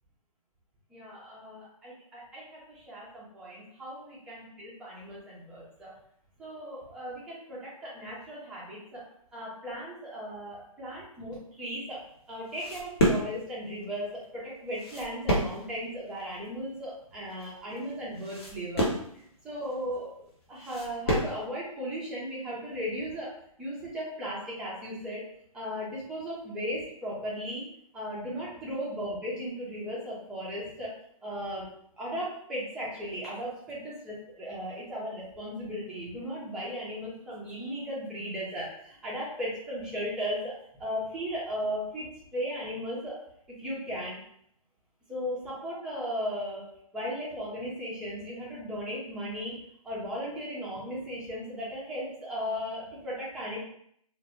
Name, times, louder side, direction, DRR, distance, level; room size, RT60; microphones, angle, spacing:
voice 1, 0.9-4.4 4.8-5.9 6.4-9.0 9.3-12.0 12.3-20.2 20.5-23.3 23.6-25.2 25.5-27.6 27.9-30.9 31.2-31.7 32.0-43.2 43.5-44.2 45.1-46.6 46.9-49.6 49.8-53.6, equal, 5° right, -6 dB, 0.3 m, -36 dB
sound 1, 11.9-21.5, equal, 45° left, 0.7 m, -31 dB
2.1 x 2.1 x 2.8 m, 0.68 s
figure-of-eight pair, 135°, 19 cm